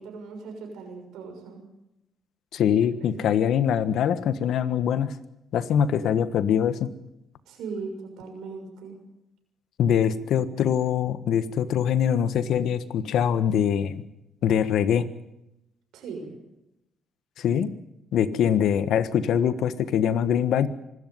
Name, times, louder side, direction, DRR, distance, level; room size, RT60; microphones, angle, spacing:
voice 1, 0.0-1.6 3.0-3.4 7.5-9.0 15.9-16.4, right 4 dB, 90° right, 4 dB, 6.6 m, -38 dB
voice 2, 2.5-5.1 5.5-6.9 9.8-14.0 14.4-15.0 17.4-17.7 18.1-20.7, left 9 dB, 75° left, 13 dB, 1.4 m, -23 dB
25.5 x 13.0 x 9.5 m, 0.89 s
cardioid pair, 90°, 0 cm